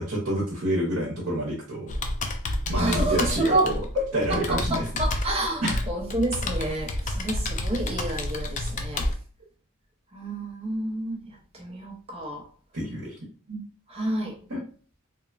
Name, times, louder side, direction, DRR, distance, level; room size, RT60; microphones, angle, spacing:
voice 1, 0.0-2.0 2.7-3.8 4.1-4.8 5.6-5.8 12.7-13.2 14.5-14.6, right 1 dB, 70° right, 0.8 m, -28 dB
Computer keyboard, 1.9-9.1, left 1 dB, 35° left, 0.3 m, -29 dB
voice 2, 2.7-9.1 10.1-11.2 11.5-12.5 13.5-13.6 13.9-14.4, right 1 dB, 30° right, 0.5 m, -29 dB
2.9 x 2.1 x 2.3 m
head